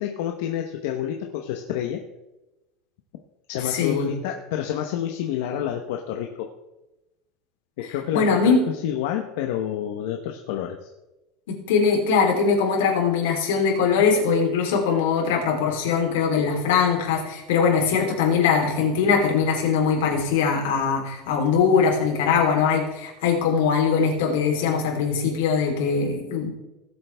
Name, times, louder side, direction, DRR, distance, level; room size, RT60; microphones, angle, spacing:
voice 1, 0.0-2.0 3.5-6.5 7.8-10.9 14.0-14.1, left 10 dB, 65° left, 3 dB, 0.9 m, -29 dB
voice 2, 3.6-4.1 8.1-8.6 11.5-26.5, left 6 dB, 85° left, 1 dB, 3.3 m, -21 dB
18.5 x 7.9 x 3.4 m, 1.0 s
cardioid pair, 180°, 0 cm